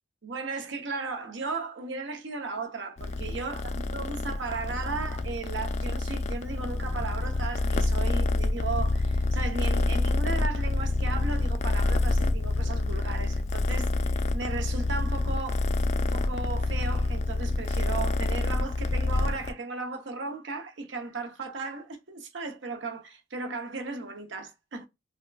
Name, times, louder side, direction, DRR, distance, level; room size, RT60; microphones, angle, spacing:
voice 1, 0.2-15.7 16.0-24.9, right 4 dB, 60° right, 0.6 m, -36 dB
Purr, 3.0-19.5, left 2 dB, 35° left, 0.3 m, -27 dB
3.5 x 2.3 x 2.2 m
head